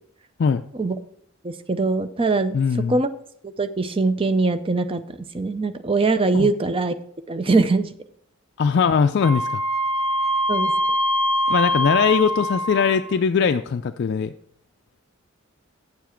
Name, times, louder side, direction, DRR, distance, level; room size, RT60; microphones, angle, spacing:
voice 1, 1.4-2.6 2.9-3.1 3.6-6.9 7.3-7.9 10.5-10.7, right 3 dB, 25° right, 11 dB, 0.5 m, -22 dB
voice 2, 2.5-3.0 6.3-6.5 8.6-9.6 11.5-14.3, left 6 dB, 50° left, 7 dB, 0.3 m, -20 dB
Wind instrument woodwind instrument, 9.2-13.1, equal, 60° right, 1.8 m, -23 dB
9.5 x 7.1 x 4.4 m, 0.67 s
head